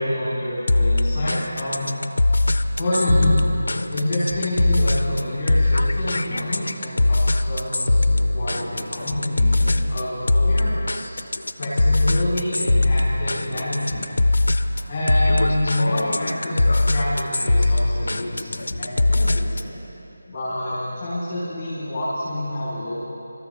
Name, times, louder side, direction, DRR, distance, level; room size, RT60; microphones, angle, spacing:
voice 1, 0.0-2.0 2.8-3.4 3.9-11.1 11.6-14.2 14.9-19.8 20.3-23.1, left 1 dB, 20° left, -10 dB, 3.5 m, -27 dB
sound 1, 0.7-19.8, left 2 dB, 55° left, 0.6 m, -21 dB
25.0 x 13.5 x 3.4 m, 3.0 s
figure-of-eight pair, 160°, 0 cm